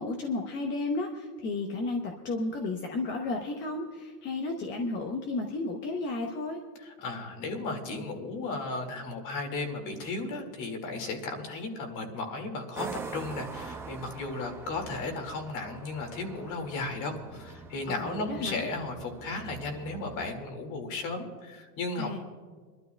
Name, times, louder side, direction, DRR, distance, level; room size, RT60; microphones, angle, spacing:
voice 1, 0.0-6.6 18.0-18.7 22.0-22.2, left 2 dB, 25° left, 2 dB, 0.8 m, -33 dB
voice 2, 6.8-22.2, left 3 dB, 40° left, 4 dB, 2.1 m, -35 dB
sound 1, 12.7-20.3, right 4 dB, 5° right, 0.6 m, -43 dB
29.0 x 12.0 x 2.2 m, 1.5 s
supercardioid pair, 150°, 48 cm